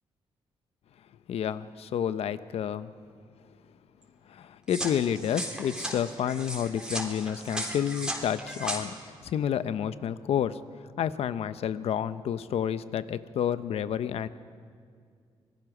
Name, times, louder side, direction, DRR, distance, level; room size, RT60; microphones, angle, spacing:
voice 1, 1.3-2.9 4.3-8.9 9.2-10.6 11.0-14.3, left 9 dB, 75° left, 14 dB, 0.8 m, -30 dB
sound 1, 4.7-8.8, right 1 dB, 5° right, 3.6 m, -36 dB
26.0 x 19.0 x 6.1 m, 2.2 s
cardioid pair, 90°, 10 cm